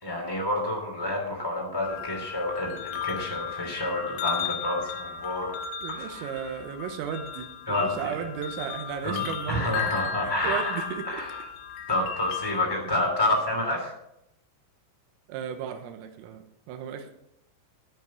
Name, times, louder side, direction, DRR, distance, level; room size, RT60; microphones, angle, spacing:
voice 1, 0.0-5.5 5.9-6.2 7.7-8.1 9.0-10.7 11.0-11.4 11.9-13.9, left 1 dB, 10° left, -1 dB, 1.5 m, -29 dB
sound 1, 1.8-12.6, left 8 dB, 85° left, 3.8 m, -35 dB
voice 2, 5.8-9.7 10.2-11.2 12.9-13.0 15.3-17.1, right 8 dB, 85° right, 6 dB, 3.7 m, -35 dB
11.0 x 9.3 x 6.1 m, 0.81 s
omnidirectional pair, 6.0 m